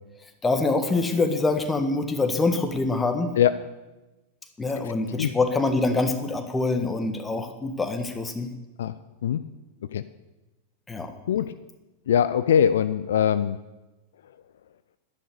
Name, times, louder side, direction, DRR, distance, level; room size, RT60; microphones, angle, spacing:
voice 1, 0.4-3.3 4.6-8.5 10.9-11.1, left 3 dB, 15° left, 7 dB, 1.6 m, -25 dB
voice 2, 12.1-13.6, left 9 dB, 60° left, 14 dB, 0.4 m, -21 dB
11.5 x 11.0 x 6.9 m, 1.1 s
figure-of-eight pair, 90°, 0 cm